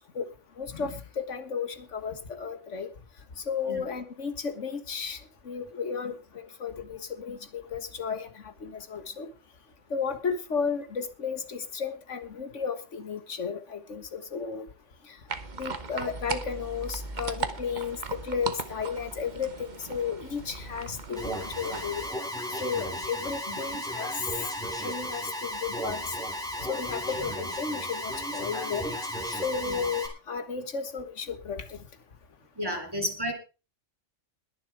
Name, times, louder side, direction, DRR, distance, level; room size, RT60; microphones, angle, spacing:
voice 1, 0.6-2.9 3.4-5.2 5.5-9.3 9.9-14.7 15.1-15.2 15.6-22.1 22.5-24.1 24.8-26.1 26.7-28.9 29.3-31.8, left 6 dB, 70° left, 9 dB, 1.8 m, -33 dB
sound 1, 15.3-22.1, right 4 dB, 40° right, 1.2 m, -37 dB
Alarm, 21.2-30.1, left 1 dB, 5° left, 3.2 m, -34 dB
voice 2, 32.6-33.3, equal, 20° right, 3 dB, 3.2 m, -32 dB
21.0 x 7.1 x 4.8 m, 0.32 s
omnidirectional pair, 1.3 m